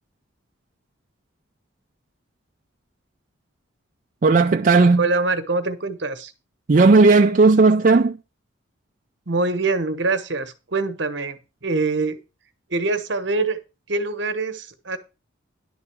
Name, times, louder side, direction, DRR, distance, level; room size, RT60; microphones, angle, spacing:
voice 1, 4.2-5.1 6.7-8.2, right 3 dB, 40° right, 0.4 m, -14 dB
voice 2, 5.0-6.3 9.3-12.2 12.7-13.6 13.9-15.0, right 3 dB, 60° right, 1.1 m, -24 dB
11.0 x 4.0 x 7.0 m
head